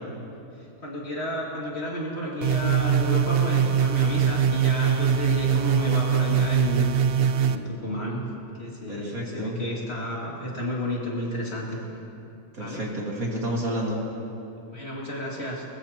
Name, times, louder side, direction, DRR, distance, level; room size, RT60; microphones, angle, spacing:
voice 1, 0.8-8.2 8.6-11.8 12.6-12.8 14.7-15.6, left 1 dB, 40° left, -4 dB, 2.7 m, -31 dB
sound 1, 2.4-7.6, right 7 dB, 80° right, 0.5 m, -22 dB
voice 2, 8.9-9.6 12.5-14.0, right 1 dB, 60° right, -3 dB, 2.7 m, -30 dB
21.0 x 20.5 x 2.9 m, 2.7 s
omnidirectional pair, 1.7 m